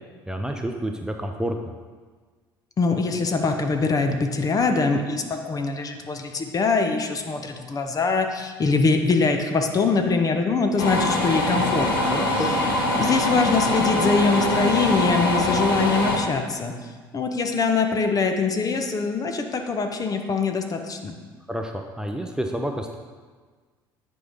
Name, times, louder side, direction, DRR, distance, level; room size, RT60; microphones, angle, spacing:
voice 1, 0.3-1.6 12.1-12.6 21.5-23.0, right 1 dB, 5° right, 3 dB, 0.7 m, -29 dB
voice 2, 2.8-12.1 13.0-21.1, left 4 dB, 30° left, 5 dB, 0.9 m, -23 dB
sound 1, 10.8-16.2, left 1 dB, 75° left, 1.1 m, -23 dB
9.5 x 4.7 x 5.4 m, 1.5 s
figure-of-eight pair, 60°, 12 cm